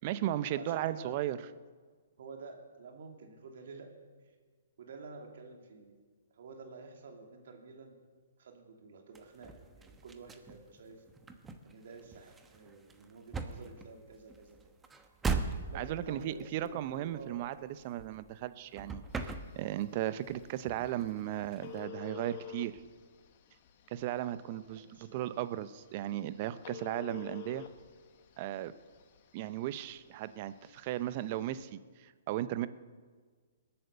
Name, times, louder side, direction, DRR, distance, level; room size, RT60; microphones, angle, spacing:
voice 1, 0.0-1.4 15.7-22.8 23.9-24.8 25.1-27.7 28.4-28.7 29.3-32.7, right 13 dB, 40° right, 14 dB, 0.7 m, -36 dB
voice 2, 0.6-1.2 2.2-3.9 4.2-4.3 4.8-6.0 6.3-8.0 8.4-11.0 11.6-14.6 15.7-17.4 24.7-25.3, right 4 dB, 65° right, 3 dB, 2.8 m, -50 dB
sound 1, 9.1-18.5 18.7-20.0 20.3-21.8, right 4 dB, 10° right, 1.0 m, -40 dB
Telephone, 19.1-31.6, left 12 dB, 45° left, 1.4 m, -52 dB
20.5 x 8.8 x 6.7 m, 1.5 s
hypercardioid pair, 135°, 0 cm